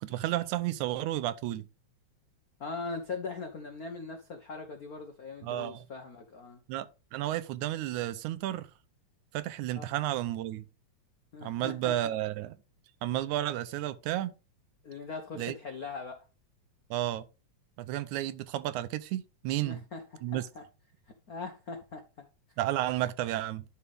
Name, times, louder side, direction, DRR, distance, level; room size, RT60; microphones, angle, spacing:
voice 1, 0.0-1.7 5.4-5.9 6.7-8.7 9.3-10.7 11.4-12.5 13.0-14.3 15.3-15.5 16.9-17.3 17.8-19.8 20.2-20.5 22.6-23.6, right 14 dB, 90° right, 2.1 m, -32 dB
voice 2, 2.6-6.6 9.8-9.9 11.3-12.1 14.8-16.2 19.6-20.6 21.3-22.3, left 4 dB, 80° left, 0.8 m, -40 dB
11.0 x 4.7 x 3.5 m
omnidirectional pair, 3.4 m